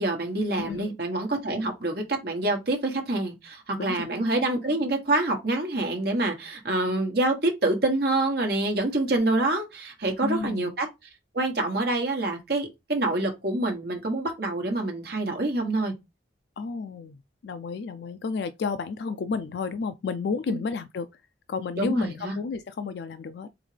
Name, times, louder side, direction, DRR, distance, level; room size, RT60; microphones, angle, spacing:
voice 1, 0.0-10.9 11.3-15.9 21.8-22.3, right 2 dB, 60° right, 1.3 m, -26 dB
voice 2, 0.6-0.9 3.8-4.1 10.2-10.7 16.6-17.2 17.4-21.1 21.5-23.5, left 4 dB, 65° left, 0.3 m, -31 dB
3.9 x 3.6 x 3.3 m
head